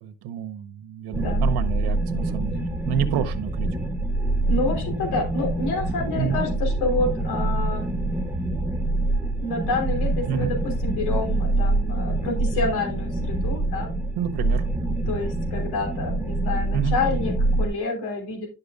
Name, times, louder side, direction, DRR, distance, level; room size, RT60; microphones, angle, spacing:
voice 1, 0.0-3.7 6.2-6.4 10.3-10.5 14.2-14.6 16.7-17.0, right 8 dB, 75° right, 7 dB, 1.0 m, -29 dB
sound 1, 1.1-17.7, right 2 dB, 5° right, 0.5 m, -25 dB
voice 2, 4.5-7.9 9.4-13.9 15.1-18.5, left 3 dB, 75° left, 2 dB, 3.2 m, -28 dB
11.0 x 6.6 x 2.4 m, 0.33 s
cardioid pair, 160°, 39 cm